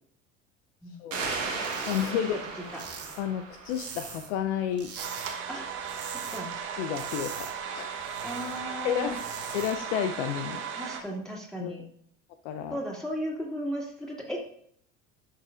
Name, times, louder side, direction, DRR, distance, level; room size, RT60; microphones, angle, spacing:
voice 1, 0.9-1.3 1.9-2.4 3.2-4.9 6.7-8.0 8.8-9.2 9.5-10.6 11.6-11.7 12.4-12.8, left 9 dB, 65° left, 8 dB, 0.6 m, -31 dB
sound 1, 1.1-4.5, right 4 dB, 85° right, 1.4 m, -36 dB
sound 2, 1.6-2.1 2.4-4.4 4.7-5.3 5.7-6.4 6.7-8.6 9.0-9.7, right 6 dB, 40° right, 1.8 m, -43 dB
sound 3, 5.0-11.0, right 7 dB, 70° right, 1.2 m, -36 dB
voice 2, 8.2-9.2 10.7-11.8 12.7-14.4, equal, ahead, -3 dB, 2.1 m, -35 dB
12.0 x 5.6 x 2.5 m, 0.66 s
figure-of-eight pair, 65°, 37 cm